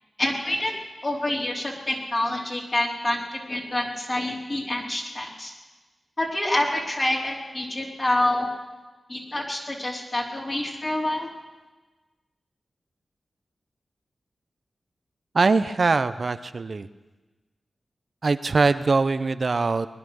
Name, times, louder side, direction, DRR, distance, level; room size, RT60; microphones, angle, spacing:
voice 1, 0.2-0.7 1.0-5.5 6.2-8.5 9.1-11.3, left 1 dB, 40° left, -1 dB, 4.1 m, -27 dB
voice 2, 15.3-16.9 18.2-19.9, right 4 dB, 60° right, 12 dB, 0.6 m, -22 dB
21.0 x 10.5 x 6.4 m, 1.2 s
cardioid pair, 45°, 0 cm